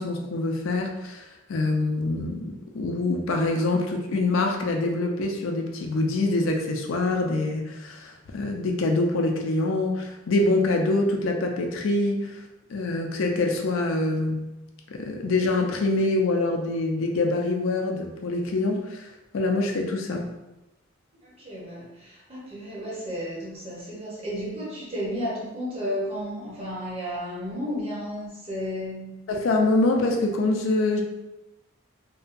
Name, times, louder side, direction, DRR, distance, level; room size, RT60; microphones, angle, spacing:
voice 1, 0.0-12.4 12.7-14.5 14.9-19.1 19.3-20.3 29.3-31.0, left 2 dB, 75° left, 2 dB, 0.4 m, -25 dB
voice 2, 21.2-29.2, equal, 30° right, -6 dB, 0.7 m, -33 dB
2.7 x 2.2 x 2.5 m, 0.99 s
head